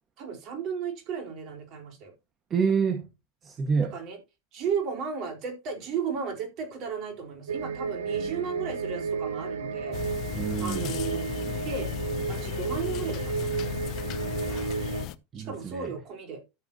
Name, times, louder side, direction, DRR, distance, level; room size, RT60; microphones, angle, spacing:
voice 1, 0.2-2.1 3.9-4.2 4.5-10.0 10.6-11.3 11.6-11.9 12.3-13.7 15.3-16.4, right 6 dB, 50° right, 4.7 m, -34 dB
voice 2, 2.5-3.1 3.4-3.9 8.1-8.3 10.3-10.9 14.5-14.7 15.3-15.9, right 6 dB, 35° right, 1.8 m, -28 dB
sound 1, 7.5-15.1, right 5 dB, 80° right, 1.3 m, -32 dB
sound 2, 9.9-15.1, left 13 dB, 50° left, 0.8 m, -35 dB
13.0 x 7.8 x 3.0 m
hypercardioid pair, 85°, 0 cm